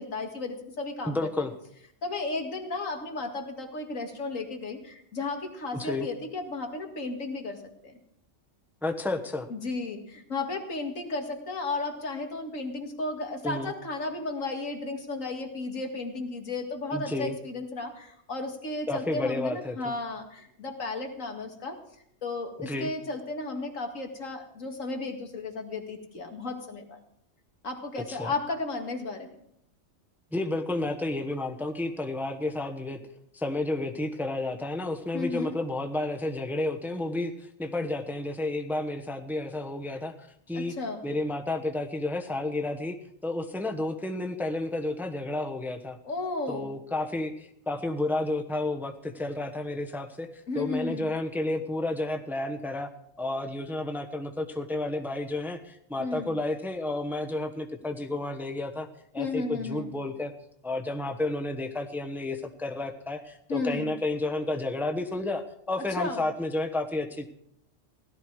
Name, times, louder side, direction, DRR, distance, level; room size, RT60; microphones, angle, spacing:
voice 1, 0.0-1.3 2.0-8.0 9.5-21.8 22.2-27.0 27.6-29.4 35.1-35.6 40.5-41.0 46.0-46.7 50.5-51.1 56.0-56.3 59.2-59.9 63.5-63.9 65.8-66.2, left 3 dB, 85° left, 4 dB, 2.3 m, -34 dB
voice 2, 1.0-1.5 5.7-6.1 8.8-9.5 13.4-13.7 16.9-17.4 18.9-19.9 22.6-22.9 28.1-28.3 30.3-33.0 33.3-40.7 41.0-43.0 43.2-46.0 46.5-52.9 53.2-58.9 59.1-60.3 60.6-67.3, left 2 dB, ahead, 4 dB, 1.0 m, -31 dB
17.0 x 13.0 x 4.8 m, 0.72 s
omnidirectional pair, 1.3 m